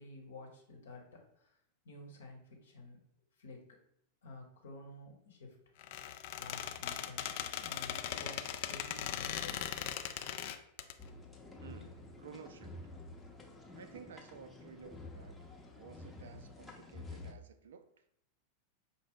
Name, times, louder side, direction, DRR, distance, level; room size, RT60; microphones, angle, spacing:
voice 1, 0.0-1.5 1.8-3.0 3.4-3.6 4.2-5.5 6.4-9.8, left 2 dB, 65° left, 1 dB, 1.0 m, -51 dB
Squeak, 5.8-10.9, left 10 dB, 50° left, 0.3 m, -39 dB
sound 1, 11.0-17.3, left 2 dB, 10° left, 0.7 m, -50 dB
voice 2, 11.6-12.8 13.8-15.4 15.8-17.9, right 6 dB, 65° right, 10 dB, 0.4 m, -53 dB
5.5 x 2.1 x 3.6 m, 0.73 s
figure-of-eight pair, 90°, 0 cm